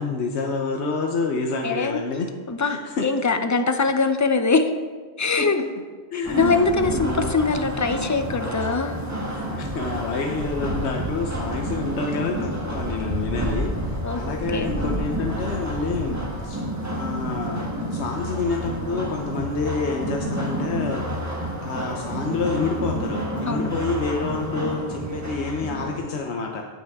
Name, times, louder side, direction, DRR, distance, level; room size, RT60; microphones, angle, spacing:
voice 1, 0.0-2.3 2.6-3.1 3.4-3.5 5.5-5.6 6.1-7.3 9.5-16.6 16.9-21.1 21.6-26.6, left 4 dB, 80° left, 2 dB, 1.1 m, -28 dB
voice 2, 1.6-2.0 2.5-4.7 5.2-5.6 6.1-9.0 14.0-14.7 23.5-23.7, left 4 dB, 25° left, 7 dB, 0.4 m, -23 dB
sound 1, 6.2-26.0, equal, 15° right, 1.1 m, -29 dB
17.0 x 6.1 x 3.5 m, 1.4 s
omnidirectional pair, 1.1 m